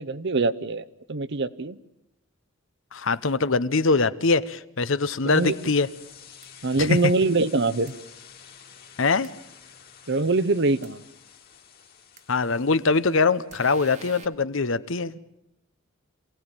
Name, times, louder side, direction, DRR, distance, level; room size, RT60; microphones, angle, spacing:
voice 1, 0.0-1.8 5.2-5.5 6.6-7.9 10.1-11.0 15.1-15.2, right 3 dB, 60° right, 16 dB, 0.8 m, -24 dB
voice 2, 2.9-5.9 9.0-9.3 12.3-15.1, left 4 dB, 65° left, 16 dB, 0.8 m, -23 dB
sound 1, 5.3-13.6, left 8 dB, 50° left, 2.8 m, -49 dB
sound 2, 6.4-6.5 7.9-8.0 9.2-9.3 10.8-10.9 12.2-12.3 13.5-14.3, right 5 dB, 35° right, 1.4 m, -46 dB
27.0 x 17.0 x 9.0 m, 0.82 s
head